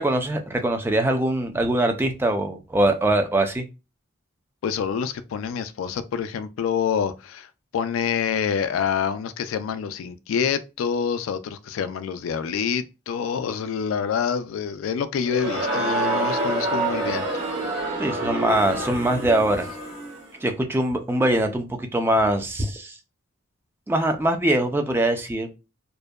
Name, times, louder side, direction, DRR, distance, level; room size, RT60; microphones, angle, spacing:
voice 1, 0.0-3.6 18.0-19.7 20.4-22.9 23.9-25.5, right 1 dB, 10° right, 0.3 m, -22 dB
voice 2, 4.6-7.5 7.7-17.3, left 7 dB, 80° left, 0.3 m, -27 dB
Crowd, 15.2-20.2, right 2 dB, 55° right, 1.0 m, -27 dB
2.5 x 2.1 x 2.3 m
head